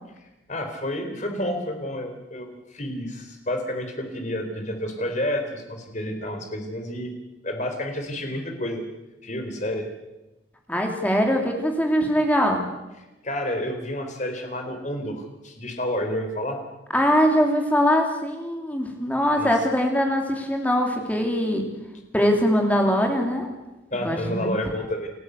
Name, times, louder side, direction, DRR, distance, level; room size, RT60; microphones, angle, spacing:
voice 1, 0.5-7.1 7.4-8.8 9.2-9.9 13.2-16.6 19.4-19.5 23.9-25.1, left 1 dB, 40° left, 4 dB, 4.0 m, -30 dB
voice 2, 10.7-12.6 16.9-21.6 22.1-23.5 23.9-24.5, equal, 10° left, 2 dB, 2.9 m, -22 dB
29.5 x 13.5 x 8.2 m, 1.0 s
head